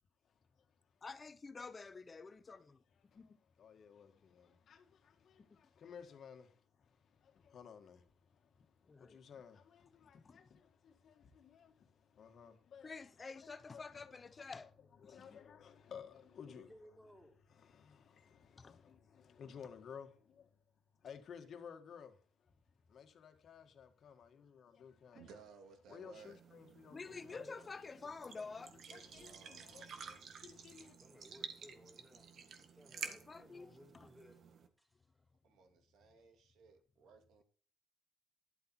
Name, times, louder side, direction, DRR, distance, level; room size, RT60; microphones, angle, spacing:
voice 1, 1.0-2.8 3.1-3.4 5.4-5.6 8.9-9.2 10.0-10.5 12.8-14.7 15.0-15.4 18.6-18.8 26.9-28.8 33.0-34.1, left 4 dB, 30° left, 1.0 m, -50 dB
voice 2, 3.1-12.9 13.4-14.4 15.0-16.7 17.5-20.5 21.0-22.5 22.9-25.3 25.9-27.5 28.4-28.5 28.9-31.0, left 7 dB, 60° left, 1.8 m, -56 dB
voice 3, 16.5-17.4 27.1-27.7 31.0-32.3 32.5-34.4 34.8-35.2, equal, ahead, 4.1 m, -61 dB
voice 4, 25.1-26.4 28.9-30.2 35.4-37.4, right 5 dB, 85° right, 2.5 m, -60 dB
sound 1, 26.2-34.7, right 6 dB, 65° right, 1.7 m, -52 dB
12.0 x 8.2 x 4.5 m
cardioid pair, 90°, 0 cm